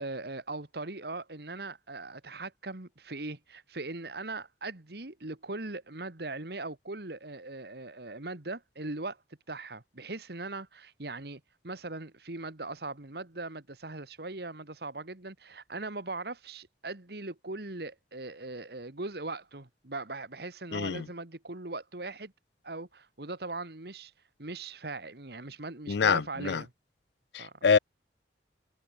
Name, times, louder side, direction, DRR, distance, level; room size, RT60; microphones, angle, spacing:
voice 1, 0.0-9.2 9.5-22.3 22.6-24.1 24.4-26.7 27.4-27.5, right 2 dB, 60° right, 1.8 m, -40 dB
voice 2, 20.7-21.0 25.9-26.6 27.3-27.8, left 6 dB, 70° left, 0.5 m, -25 dB
head